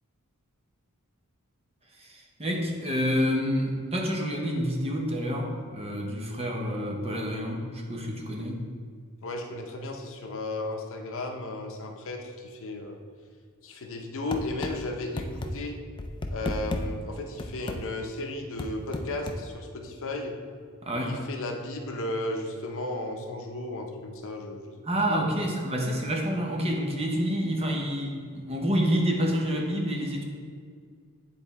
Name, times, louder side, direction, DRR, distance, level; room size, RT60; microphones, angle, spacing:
voice 1, 1.9-8.7 20.8-21.2 24.8-30.2, equal, 25° right, 0 dB, 0.9 m, -28 dB
voice 2, 9.2-13.0 13.6-15.8 16.3-20.4 20.9-25.5, left 2 dB, 60° left, 3 dB, 0.7 m, -35 dB
sound 1, 14.3-14.7 15.2-15.5 16.0-16.8 17.4-17.8 18.6-19.4, left 1 dB, 20° left, 0.4 m, -32 dB
9.2 x 3.5 x 4.2 m, 2.1 s
head